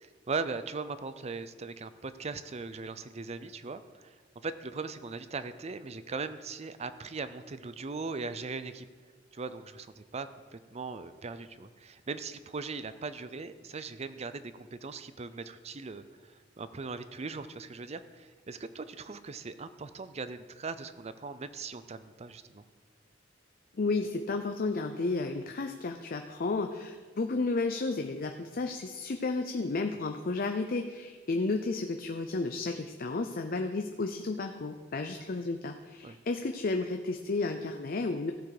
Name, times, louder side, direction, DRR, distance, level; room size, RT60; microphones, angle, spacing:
voice 1, 0.0-8.9 9.3-22.7 36.0-36.2, right 4 dB, 35° right, 12 dB, 0.5 m, -39 dB
voice 2, 23.8-38.3, left 3 dB, 50° left, 6 dB, 0.5 m, -32 dB
15.5 x 7.1 x 4.9 m, 1.5 s
head